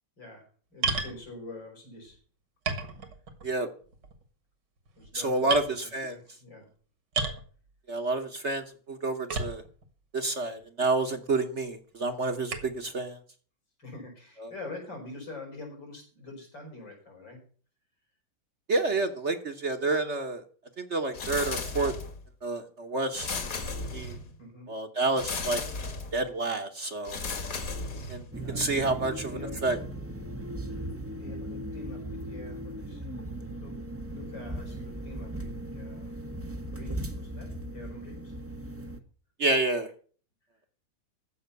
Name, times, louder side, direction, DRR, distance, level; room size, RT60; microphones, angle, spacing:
voice 1, 0.7-2.2 4.9-6.7 13.8-17.4 24.4-24.7 28.4-29.6 31.1-33.1 33.6-36.1 36.7-38.3, left 2 dB, 80° left, 2 dB, 6.0 m, -45 dB
sound 1, 0.8-1.2 2.1-2.2 2.6-3.5 3.9-4.2 4.9-5.1 5.5-5.7 7.1-7.5 9.3-9.8 10.6-10.7 12.5-12.8, right 4 dB, 70° right, 2.3 m, -32 dB
voice 2, 5.1-6.2 7.9-9.6 10.1-13.2 14.4-14.5 18.7-20.4 20.8-21.9 22.4-23.3 23.9-24.2 24.7-25.6 26.1-27.2 28.1-28.2 28.6-29.8 39.4-39.9, right 3 dB, 45° right, 7 dB, 1.2 m, -29 dB
sound 2, 21.1-22.3 23.1-24.4 25.2-26.2 27.0-28.4, left 3 dB, 50° left, 1.9 m, -35 dB
sound 3, 28.3-39.0, right 1 dB, 10° right, 0.6 m, -38 dB
14.5 x 5.7 x 8.2 m, 0.43 s
omnidirectional pair, 2.0 m